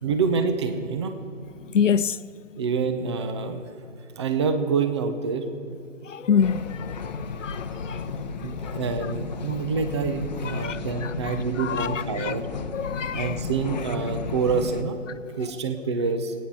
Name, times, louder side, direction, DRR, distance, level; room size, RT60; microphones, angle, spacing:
voice 1, 0.0-1.1 2.6-3.6 4.2-5.8 8.4-12.5 13.1-16.3, right 5 dB, 25° right, 0.6 m, -27 dB
voice 2, 1.7-2.2 6.1-8.1 8.6-8.7 10.5-12.3 12.7-13.4, left 7 dB, 75° left, 0.6 m, -27 dB
sound 1, 6.4-14.8, left 4 dB, 35° left, 0.8 m, -33 dB
22.5 x 9.3 x 4.8 m
figure-of-eight pair, 145°, 38 cm